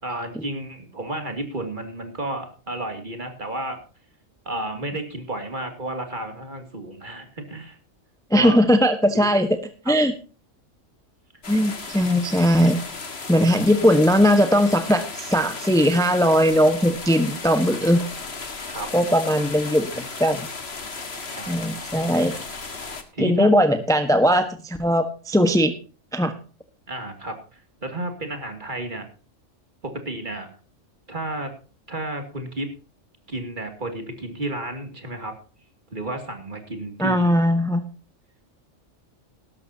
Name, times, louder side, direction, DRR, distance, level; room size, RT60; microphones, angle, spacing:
voice 1, 0.0-3.8 4.4-7.8 8.3-8.6 9.1-9.3 9.8-10.0 18.7-19.2 21.3-21.6 23.1-23.5 26.9-29.1 29.8-30.6 31.1-31.5 31.9-32.7 33.3-35.4 35.9-37.4, right 1 dB, 40° right, 6 dB, 2.7 m, -32 dB
voice 2, 8.3-9.5 9.9-10.1 11.5-12.8 13.3-18.0 18.9-20.5 21.5-22.3 23.2-25.7 26.1-26.3 37.0-37.8, equal, 5° left, 8 dB, 1.2 m, -19 dB
sound 1, 11.4-23.0, left 4 dB, 55° left, 2.0 m, -35 dB
18.0 x 12.5 x 2.8 m, 0.36 s
omnidirectional pair, 1.3 m